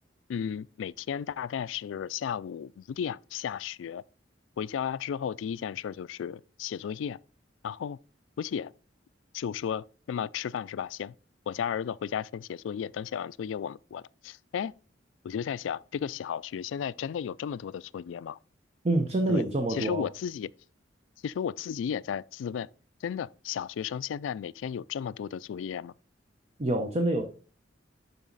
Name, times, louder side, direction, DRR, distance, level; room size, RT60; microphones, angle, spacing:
voice 1, 0.3-4.0 4.6-7.2 7.6-8.0 8.4-8.7 9.3-11.1 11.5-14.7 15.2-18.4 19.3-19.4 19.7-20.5 21.2-22.7 23.0-25.9, left 8 dB, 90° left, 0.3 m, -34 dB
voice 2, 18.8-20.1 26.6-27.2, right 1 dB, 35° right, 0.8 m, -26 dB
12.0 x 4.1 x 4.0 m
head